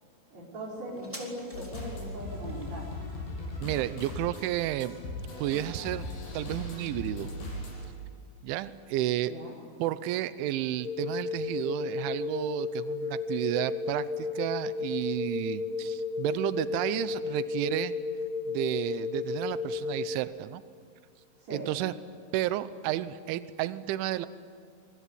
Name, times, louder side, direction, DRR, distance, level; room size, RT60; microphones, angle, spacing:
voice 1, 0.3-2.9 9.2-9.5 21.4-21.7, right 1 dB, 35° right, -6 dB, 6.0 m, -39 dB
sound 1, 0.9-8.0 8.3-8.4, equal, 5° right, 3.1 m, -53 dB
sound 2, 1.5-7.9, left 1 dB, 65° left, 8.3 m, -38 dB
voice 2, 3.6-5.0 5.4-6.1 6.3-7.3 8.4-9.3 9.8-17.9 18.5-20.6 21.5-21.9 22.3-24.3, right 14 dB, 85° right, 13 dB, 3.2 m, -31 dB
sound 3, 10.8-20.2, left 4 dB, 35° left, 2.5 m, -33 dB
25.0 x 24.0 x 9.9 m, 2.2 s
omnidirectional pair, 5.4 m